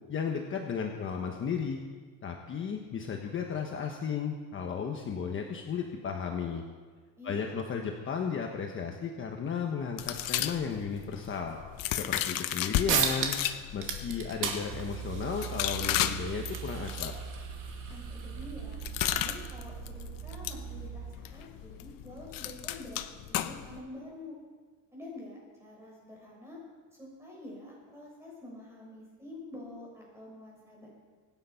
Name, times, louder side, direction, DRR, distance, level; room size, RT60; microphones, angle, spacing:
voice 1, 0.1-1.8 2.2-6.6 7.2-11.6 11.9-13.3 13.7-17.1, left 6 dB, 35° left, 2 dB, 1.2 m, -34 dB
voice 2, 7.2-7.7 17.9-18.8 19.1-23.0 23.3-24.4 24.9-26.6 27.0-30.9, left 1 dB, 10° right, -4 dB, 6.4 m, -47 dB
sound 1, 10.0-12.9 13.3-23.8, left 12 dB, 75° left, 1.0 m, -35 dB
sound 2, 12.9-13.5 13.8-18.9, right 6 dB, 65° right, 2.5 m, -35 dB
sound 3, 14.7-21.1, right 11 dB, 85° right, 2.6 m, -41 dB
24.5 x 9.6 x 5.8 m, 1.5 s
cardioid pair, 165°, 34 cm